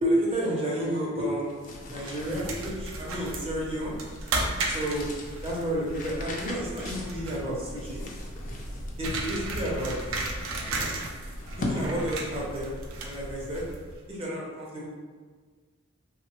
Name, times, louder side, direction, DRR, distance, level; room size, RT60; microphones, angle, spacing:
voice 1, 0.0-1.6 1.9-4.0 4.7-5.1 5.4-8.1 9.0-10.0 10.7-10.9 11.5-12.7 13.0-13.6 14.1-14.9, equal, 25° right, -4 dB, 0.5 m, -31 dB
sound 1, 1.3-12.5, left 1 dB, 40° left, 0.3 m, -40 dB
sound 2, 2.0-14.0, right 2 dB, 75° right, 0.4 m, -35 dB
3.0 x 2.1 x 2.9 m, 1.5 s
head